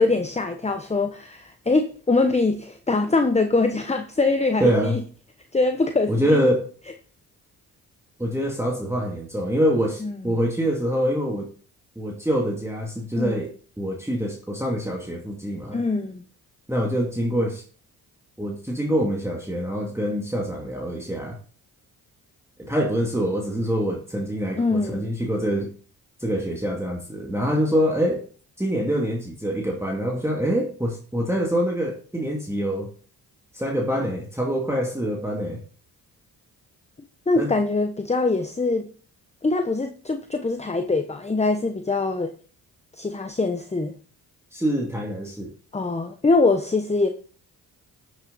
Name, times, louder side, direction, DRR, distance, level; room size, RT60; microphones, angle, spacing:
voice 1, 0.0-5.0 5.5-6.5 10.0-10.4 13.2-13.4 15.7-16.2 24.6-25.1 37.3-38.9 39.4-42.3 42.9-44.0 45.7-47.1, left 3 dB, 15° left, 0.9 m, -23 dB
voice 2, 4.6-5.0 6.1-6.6 8.2-11.5 12.0-13.5 13.8-15.8 16.7-17.6 18.4-21.4 22.6-25.7 26.2-28.2 28.6-32.9 33.5-35.6 37.4-37.5 44.5-45.5, equal, 5° right, 2.2 m, -25 dB
9.7 x 6.4 x 3.9 m
supercardioid pair, 45°, 43 cm